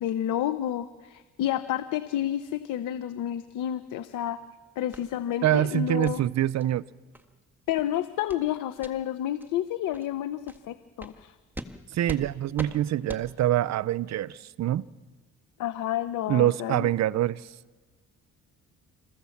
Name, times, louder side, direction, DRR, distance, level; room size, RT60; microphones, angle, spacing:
voice 1, 0.0-4.4 4.8-6.2 7.7-11.3 15.6-16.9, left 11 dB, 85° left, 0.8 m, -30 dB
sound 1, 4.9-5.0 5.5-5.6 6.0-6.2 6.6-6.7 7.1-7.2 7.6-7.8 8.3-8.4 8.8-8.9 9.4-9.5 9.9-10.1 10.5-10.6 11.0-11.1 11.5-11.7 12.1-12.2 12.6-12.7 13.1-13.2, right 1 dB, 5° right, 1.6 m, -40 dB
voice 2, 5.4-6.8 11.9-14.9 16.3-17.5, right 13 dB, 60° right, 0.6 m, -25 dB
27.0 x 15.5 x 7.2 m
cardioid pair, 90°, 30 cm